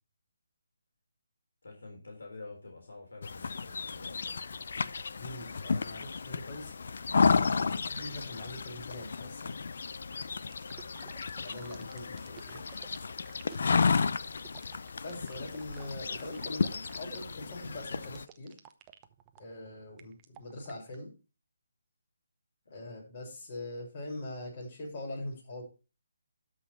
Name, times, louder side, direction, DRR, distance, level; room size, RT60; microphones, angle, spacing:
voice 1, 1.6-4.4 22.7-23.0, left 3 dB, 80° left, 1 dB, 3.7 m, -48 dB
sound 1, 3.2-18.2, left 5 dB, 60° left, 0.7 m, -32 dB
voice 2, 5.2-6.7 7.3-9.6 11.4-12.6 15.0-18.6 19.4-21.1 22.7-25.6, left 1 dB, 40° left, -2 dB, 7.0 m, -42 dB
sound 2, 10.4-21.0, right 13 dB, 20° right, 0.8 m, -54 dB
13.0 x 5.8 x 4.6 m, 0.32 s
hypercardioid pair, 160°, 0 cm